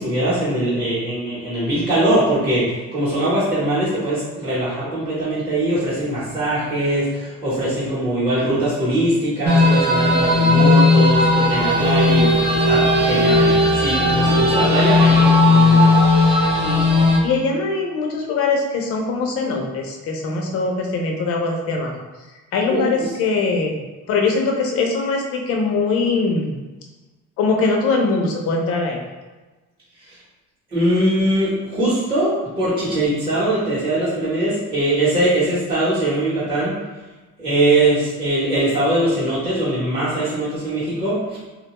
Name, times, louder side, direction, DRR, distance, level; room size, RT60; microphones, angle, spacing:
voice 1, 0.0-15.9 22.7-23.1 30.0-30.2 30.7-36.7 37.4-41.4, right 1 dB, 15° right, -11 dB, 0.8 m, -21 dB
Last Resort Horror Ambiance, 9.5-17.2, left 2 dB, 35° right, 0.5 m, -15 dB
voice 2, 16.6-22.0 22.5-23.8 24.1-26.6 27.4-29.0, left 3 dB, 50° left, 1 dB, 0.5 m, -22 dB
3.7 x 2.2 x 2.9 m, 1.2 s
cardioid pair, 180°, 29 cm